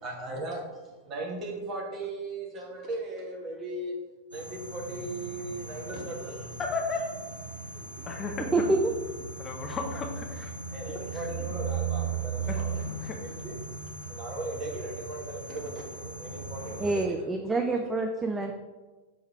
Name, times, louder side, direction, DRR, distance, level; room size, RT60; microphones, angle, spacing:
voice 1, 0.0-4.0 4.3-6.4 10.7-12.8 13.2-13.5 14.1-17.2 17.7-17.8, right 2 dB, 30° right, -1 dB, 1.6 m, -37 dB
sound 1, 4.3-17.1, right 4 dB, 85° right, 0.8 m, -37 dB
voice 2, 6.6-7.1 7.7-8.5 9.4-10.3 11.1-11.3 12.5-12.6 13.0-13.2, left 3 dB, 25° left, 3 dB, 0.7 m, -34 dB
voice 3, 16.8-18.5, right 3 dB, 10° right, 4 dB, 0.4 m, -27 dB
6.1 x 3.6 x 4.6 m, 1.2 s
figure-of-eight pair, 90°, 0 cm